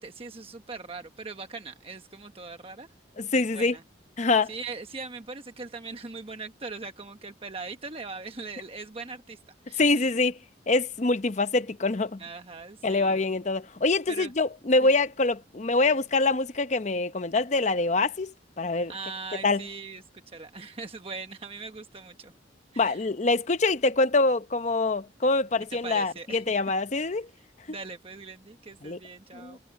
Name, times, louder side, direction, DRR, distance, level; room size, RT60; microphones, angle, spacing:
voice 1, 0.0-2.9 3.3-3.8 4.5-9.4 9.7-9.8 12.2-13.3 14.1-14.3 18.9-22.3 22.7-23.0 25.8-26.4 27.7-29.6, right 4 dB, 30° right, 1.1 m, -40 dB
voice 2, 3.2-3.8 4.2-4.5 9.8-10.4 10.7-12.2 12.8-18.9 19.4-19.6 22.8-27.3 28.8-29.0 29.3-29.6, left 3 dB, 40° left, 0.8 m, -25 dB
head